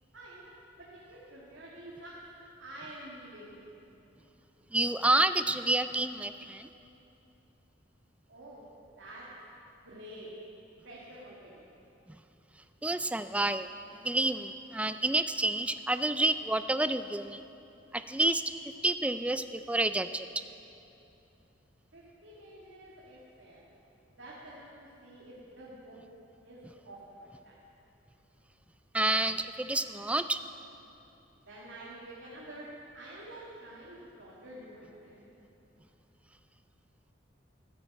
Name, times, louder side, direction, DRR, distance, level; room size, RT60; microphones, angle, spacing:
voice 1, 0.1-0.4 0.8-2.1 2.6-3.5 8.3-8.6 9.0-9.2 9.8-10.3 10.8-11.6 21.9-23.7 24.1-24.7 25.0-26.0 26.4-27.6 31.4-32.6 32.9-35.3, right 1 dB, 75° right, -6 dB, 2.2 m, -48 dB
voice 2, 4.7-6.7 12.8-13.7 14.0-17.4 17.9-18.4 18.8-20.3 28.9-30.4, right 2 dB, 5° right, 11 dB, 0.3 m, -29 dB
13.5 x 9.8 x 7.4 m, 2.8 s
head